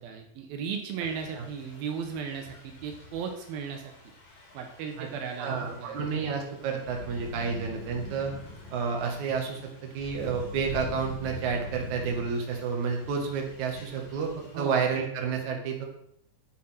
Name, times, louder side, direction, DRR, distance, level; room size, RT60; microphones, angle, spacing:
voice 1, 0.0-3.9 4.5-6.1 14.5-14.8, right 6 dB, 85° right, 3 dB, 3.1 m, -36 dB
Thunder / Rain, 1.0-14.6, left 3 dB, 85° left, 5.1 m, -45 dB
voice 2, 5.4-8.3 8.7-9.6 9.9-14.3 14.6-15.8, right 5 dB, 55° right, 2 dB, 3.1 m, -30 dB
9.5 x 7.7 x 5.9 m, 0.70 s
omnidirectional pair, 4.2 m